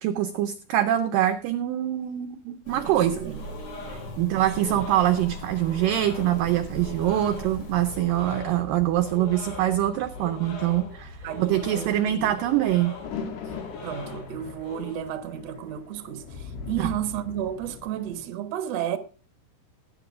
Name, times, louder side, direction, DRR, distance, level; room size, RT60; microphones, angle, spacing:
voice 1, 0.0-3.3 4.2-11.1 11.4-13.0 16.8-16.9, right 12 dB, 75° right, 2.0 m, -24 dB
sound 1, 2.6-8.0, right 1 dB, 30° left, 3.4 m, -41 dB
voice 2, 2.7-3.4 4.3-4.8 11.2-12.3 13.8-19.0, right 10 dB, 60° right, 1.8 m, -33 dB
sound 2, 2.8-14.9, left 4 dB, 65° left, 5.1 m, -42 dB
sound 3, 4.4-18.3, left 4 dB, 80° left, 3.9 m, -41 dB
19.0 x 9.4 x 2.5 m
omnidirectional pair, 4.6 m